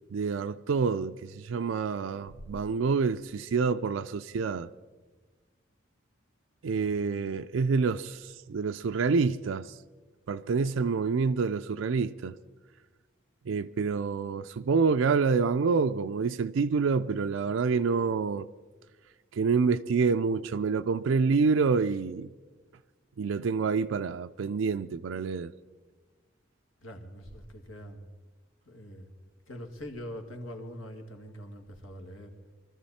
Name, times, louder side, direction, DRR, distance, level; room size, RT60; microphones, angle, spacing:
voice 1, 0.1-4.7 6.6-9.7 10.3-12.3 13.5-18.5 19.3-22.3 23.2-25.5, right 5 dB, 75° right, 0.4 m, -27 dB
voice 2, 6.7-7.2 26.8-28.1 28.7-29.1 29.5-32.4, equal, 80° left, 2.1 m, -43 dB
23.5 x 13.5 x 4.2 m
head